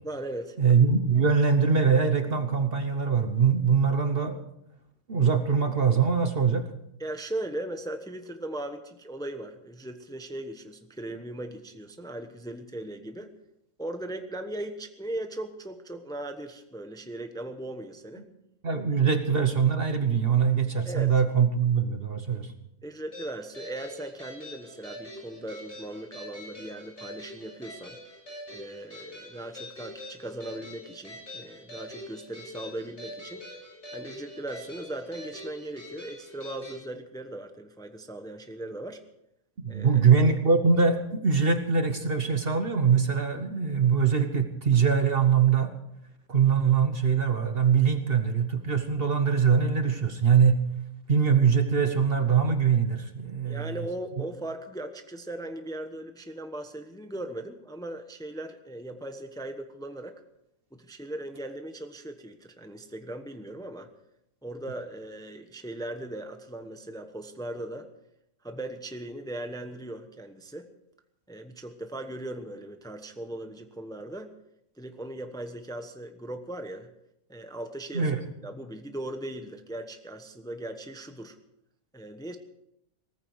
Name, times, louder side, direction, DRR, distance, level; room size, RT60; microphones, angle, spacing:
voice 1, 0.0-0.6 7.0-13.3 13.8-18.2 19.0-19.1 20.8-21.1 22.8-28.0 28.5-33.5 33.9-39.0 39.7-40.0 53.5-60.2 60.7-63.9 64.4-67.9 68.4-70.7 71.3-74.3 74.8-76.9 77.3-78.1 78.4-81.4 81.9-82.4, right 1 dB, 5° left, 7 dB, 1.0 m, -38 dB
voice 2, 0.6-4.4 5.1-6.7 18.6-22.5 39.6-45.7 46.3-50.6 51.1-53.8 77.9-78.2, right 6 dB, 45° right, 8 dB, 1.2 m, -23 dB
sound 1, 23.1-36.8, left 1 dB, 50° left, 8.0 m, -44 dB
18.0 x 14.5 x 4.8 m, 0.81 s
omnidirectional pair, 1.5 m